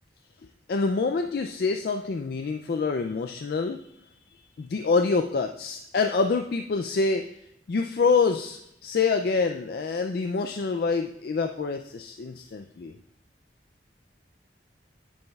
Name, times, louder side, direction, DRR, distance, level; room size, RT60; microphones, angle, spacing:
voice 1, 0.7-3.8 4.6-7.3 7.7-12.9, left 4 dB, 55° left, 5 dB, 0.4 m, -26 dB
9.6 x 8.4 x 2.3 m, 0.79 s
head